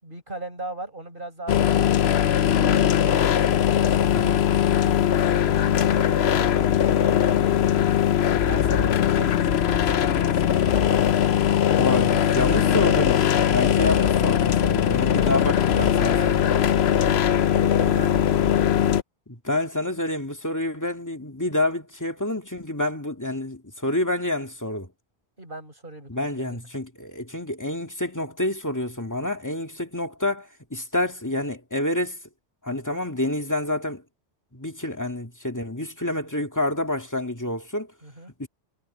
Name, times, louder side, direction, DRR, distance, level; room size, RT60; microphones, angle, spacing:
voice 1, 0.0-2.3 3.0-4.4 4.7-7.9 8.4-11.1 11.6-12.8 15.1-18.3 25.4-26.6 38.0-38.3, right 2 dB, 50° right, 7.0 m, -39 dB
sound 1, 1.5-19.0, left 9 dB, 65° left, 1.0 m, -20 dB
voice 2, 11.8-16.3 19.3-24.9 26.1-32.2 32.6-34.0 34.5-37.9 38.4-38.5, left 1 dB, 15° left, 2.2 m, -28 dB
omnidirectional pair, 1.2 m